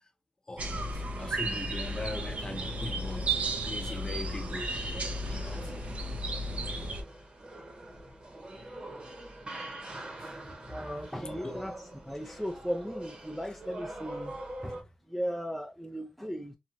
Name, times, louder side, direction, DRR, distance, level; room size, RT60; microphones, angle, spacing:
voice 1, 0.5-4.8 5.3-5.6 10.2-10.7 11.4-11.6 12.3-12.4, left 2 dB, 30° left, 0.7 m, -41 dB
sound 1, 0.6-7.0, right 2 dB, 55° right, 0.5 m, -34 dB
sound 2, 1.7-14.8, right 1 dB, 40° right, 1.1 m, -45 dB
voice 2, 10.5-11.8 12.0-16.6, equal, ahead, 0.4 m, -37 dB
2.9 x 2.2 x 2.6 m
cardioid pair, 75°, 3 cm